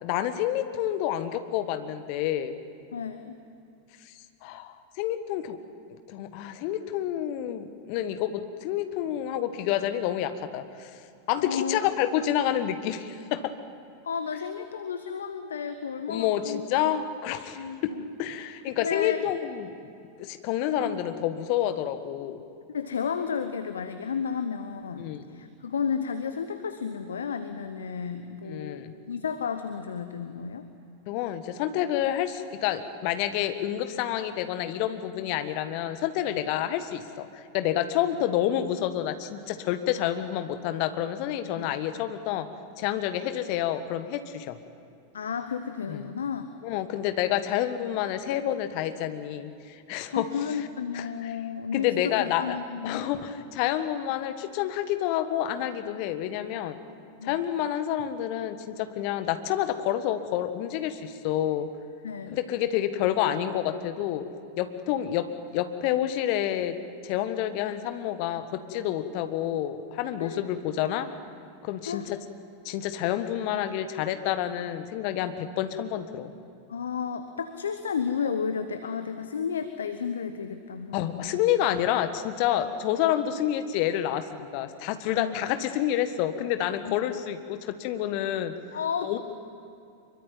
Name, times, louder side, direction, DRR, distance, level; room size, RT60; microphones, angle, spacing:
voice 1, 0.0-2.6 4.1-4.2 4.4-5.6 6.1-10.9 11.3-13.5 16.1-19.8 20.2-22.4 25.0-25.3 28.5-28.9 31.1-42.5 42.8-44.6 45.9-46.0 46.6-50.7 50.9-51.3 51.7-52.6 52.8-56.8 57.2-61.7 62.3-64.3 64.6-66.8 67.0-71.1 71.6-72.2 72.6-76.3 80.9-88.5 89.0-89.2, left 11 dB, 45° left, 9 dB, 1.6 m, -29 dB
voice 2, 2.9-3.4 11.4-11.9 14.0-16.7 16.9-17.0 17.5-18.1 18.8-19.2 20.8-21.0 22.7-30.7 41.5-41.7 45.1-46.5 50.1-53.1 57.2-57.4 62.0-62.4 70.2-70.4 71.9-72.1 76.7-81.3 85.2-85.4 86.8-87.0 88.7-89.2, left 6 dB, 65° left, 9 dB, 1.1 m, -32 dB
25.5 x 23.5 x 9.2 m, 2.5 s
figure-of-eight pair, 90°, 0 cm